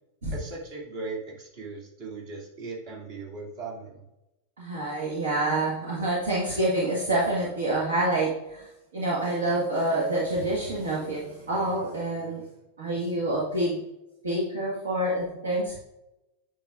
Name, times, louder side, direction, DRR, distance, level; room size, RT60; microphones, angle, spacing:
voice 1, 0.3-4.0, right 3 dB, 45° right, -2 dB, 2.5 m, -38 dB
voice 2, 4.6-8.7 8.9-12.4 12.8-13.8 14.2-15.8, right 1 dB, 65° right, -5 dB, 1.6 m, -27 dB
8.8 x 6.5 x 2.5 m, 0.91 s
figure-of-eight pair, 90°, 0 cm